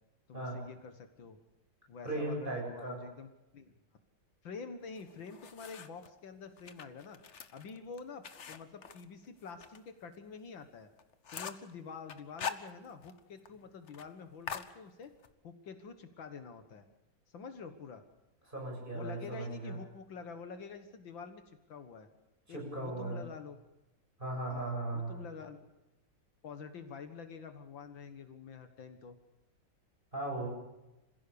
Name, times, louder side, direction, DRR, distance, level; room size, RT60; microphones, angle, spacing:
voice 1, 0.3-1.4 1.9-3.3 3.5-3.7 4.4-7.2 7.5-10.9 11.3-15.1 15.4-16.9 17.3-18.0 18.9-21.4 21.7-22.1 22.5-23.6 24.5-25.6 26.4-29.2, left 5 dB, 70° left, 8 dB, 2.2 m, -47 dB
voice 2, 2.0-3.0 18.5-19.8 22.5-23.3 24.2-25.2 30.1-30.5, right 2 dB, 25° right, -1 dB, 7.9 m, -37 dB
sound 1, 5.0-6.1 6.6-9.8 10.1-10.2 10.6-10.7 11.0-11.7 12.1-13.2 13.5-13.6 13.9-14.1 14.5-15.3, left 7 dB, 45° left, 1.1 m, -43 dB
26.5 x 16.0 x 6.9 m, 0.97 s
omnidirectional pair, 2.2 m